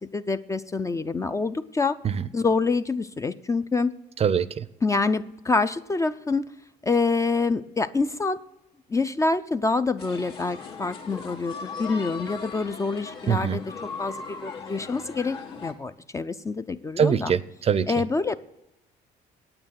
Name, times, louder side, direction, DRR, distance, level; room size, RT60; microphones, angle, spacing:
voice 1, 0.0-2.0 2.3-3.9 4.8-6.5 6.8-8.4 8.9-13.6 14.0-17.3 17.9-18.4, left 3 dB, 20° left, 11 dB, 0.4 m, -26 dB
voice 2, 4.2-4.7 13.3-13.6 17.0-17.9, right 7 dB, 35° right, 16 dB, 0.5 m, -23 dB
sound 1, 10.0-15.7, left 5 dB, 80° left, 2.0 m, -38 dB
8.9 x 8.8 x 7.4 m, 0.92 s
cardioid pair, 110°, 17 cm